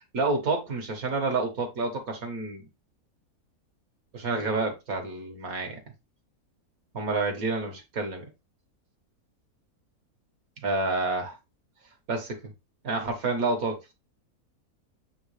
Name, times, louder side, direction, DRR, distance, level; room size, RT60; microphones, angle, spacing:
voice 1, 0.1-2.7 4.1-5.8 6.9-8.2 10.6-11.3 12.1-12.4 12.8-13.9, right 3 dB, 65° right, 2.1 m, -29 dB
8.6 x 3.3 x 3.3 m
omnidirectional pair, 1.6 m